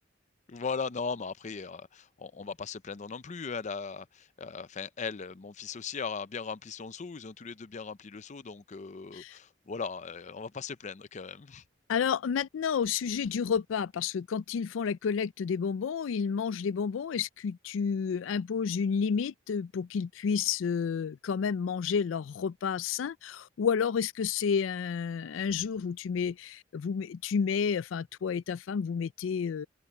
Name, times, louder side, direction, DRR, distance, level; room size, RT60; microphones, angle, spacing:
voice 1, 0.5-11.6, left 5 dB, 40° left, 0.5 m, -38 dB
voice 2, 11.9-29.7, left 6 dB, 90° left, 0.4 m, -30 dB
head